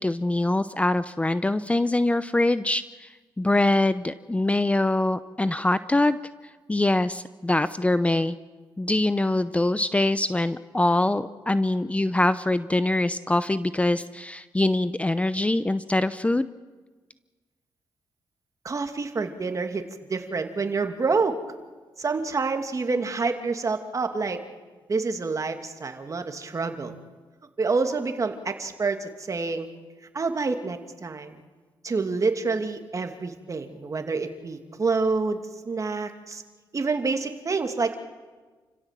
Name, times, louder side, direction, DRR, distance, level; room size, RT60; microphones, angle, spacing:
voice 1, 0.0-3.1 3.4-6.2 6.7-8.4 8.8-16.5, left 2 dB, 15° left, 14 dB, 0.7 m, -23 dB
voice 2, 18.6-19.8 20.1-21.4 22.0-24.4 24.9-27.0 27.6-29.7 30.1-31.3 31.8-36.4 36.7-37.9, right 4 dB, 40° right, 6 dB, 2.6 m, -27 dB
29.5 x 16.0 x 7.6 m, 1.3 s
cardioid pair, 70°, 8 cm